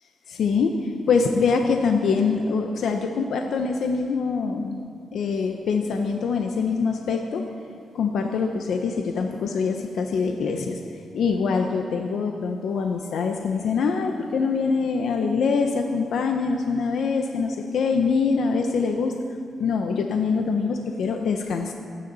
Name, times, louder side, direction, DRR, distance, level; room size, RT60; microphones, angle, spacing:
voice 1, 0.3-7.4 7.9-19.2 19.6-21.7, left 5 dB, 75° left, 4 dB, 0.9 m, -24 dB
27.0 x 9.9 x 4.1 m, 2.3 s
cardioid pair, 65°, 0 cm